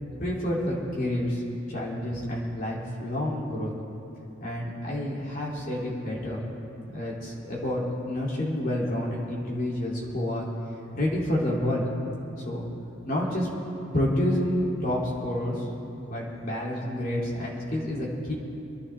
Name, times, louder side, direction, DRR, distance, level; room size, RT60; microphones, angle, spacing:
voice 1, 0.2-1.4 1.7-3.7 4.4-6.4 6.9-10.5 10.9-11.8 12.3-12.7 13.1-13.5 13.9-15.6 15.9-18.3, left 1 dB, 45° left, -5 dB, 3.3 m, -29 dB
28.0 x 11.0 x 3.6 m, 2.8 s
head